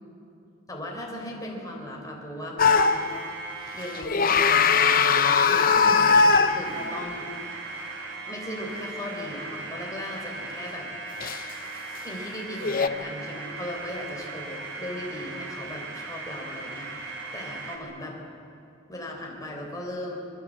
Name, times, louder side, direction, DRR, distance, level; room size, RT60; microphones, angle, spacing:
voice 1, 0.7-3.1 3.7-7.3 8.2-11.3 12.0-18.2 18.9-20.2, left 1 dB, 15° left, -2 dB, 4.2 m, -37 dB
sound 1, 2.6-3.3 3.9-7.0 11.2-11.4 12.6-12.9, left 5 dB, 45° left, 0.8 m, -20 dB
sound 2, 2.6-4.0 4.3-17.8, right 3 dB, 75° right, 3.6 m, -38 dB
26.0 x 22.5 x 7.7 m, 2.7 s
head